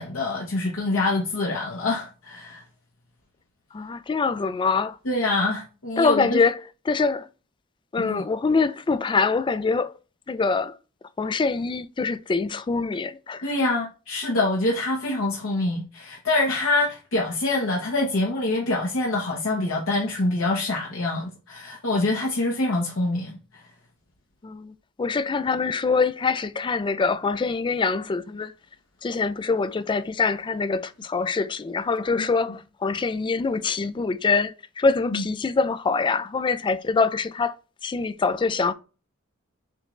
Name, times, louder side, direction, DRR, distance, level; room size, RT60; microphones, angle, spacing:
voice 1, 0.0-2.6 5.0-6.4 8.0-8.2 13.4-23.6 32.2-32.3 35.0-35.2, left 2 dB, 70° left, 1.1 m, -25 dB
voice 2, 3.7-5.0 6.0-6.6 6.9-7.3 7.9-9.9 10.3-10.7 11.2-13.5 24.4-28.5 29.0-37.6 37.8-38.7, left 4 dB, 25° left, 0.3 m, -24 dB
6.4 x 3.2 x 2.5 m
head